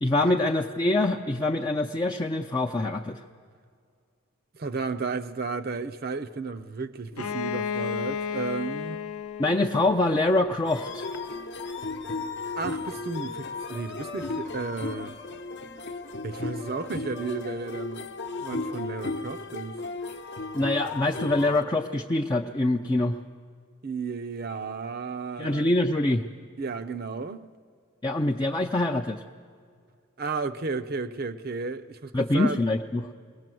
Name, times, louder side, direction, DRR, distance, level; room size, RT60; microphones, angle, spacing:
voice 1, 0.0-3.2 9.4-11.1 20.5-23.2 25.4-26.2 28.0-29.2 32.1-33.1, left 2 dB, 20° left, 0.4 m, -25 dB
voice 2, 4.5-9.0 12.6-15.2 16.2-18.1 18.4-19.8 23.8-25.7 26.6-27.5 30.2-32.6, right 4 dB, 45° right, 0.6 m, -33 dB
Bowed string instrument, 7.1-10.8, left 6 dB, 90° left, 0.8 m, -33 dB
sound 1, 10.6-21.6, left 3 dB, 50° left, 0.9 m, -35 dB
21.5 x 18.0 x 7.7 m
head